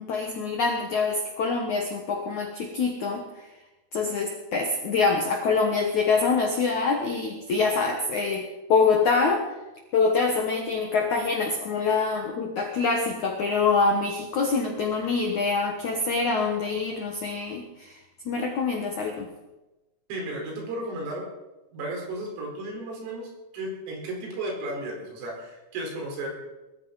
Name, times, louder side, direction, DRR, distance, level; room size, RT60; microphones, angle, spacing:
voice 1, 0.0-3.5 3.9-9.5 9.9-18.0 18.2-19.3, left 4 dB, 75° left, 2 dB, 1.7 m, -25 dB
voice 2, 20.1-21.3 21.7-26.3, right 1 dB, 80° right, 0 dB, 7.1 m, -34 dB
22.0 x 15.0 x 4.1 m, 1.0 s
omnidirectional pair, 5.9 m